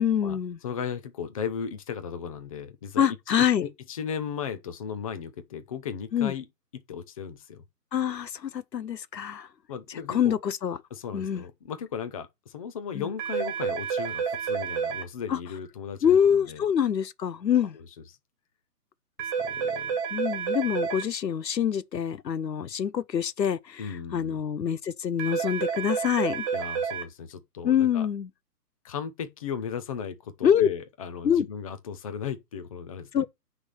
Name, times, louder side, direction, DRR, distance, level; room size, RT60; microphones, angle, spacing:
voice 1, 0.0-0.6 3.0-3.6 6.1-6.3 7.9-9.5 10.1-10.8 11.1-11.4 12.9-13.1 15.3-15.4 16.0-17.8 20.1-26.5 27.6-28.3 30.4-30.7 31.2-31.5 33.1-33.3, left 8 dB, 85° left, 1.0 m, -25 dB
voice 2, 0.6-6.4 6.7-7.6 9.7-10.4 10.9-16.6 19.2-20.0 23.8-24.4 26.5-28.1 28.8-33.2, left 7 dB, 20° left, 0.8 m, -36 dB
sound 1, 13.2-15.0 19.2-21.0 25.2-27.0, right 6 dB, 15° right, 1.9 m, -29 dB
9.7 x 3.6 x 6.5 m
hypercardioid pair, 150°, 49 cm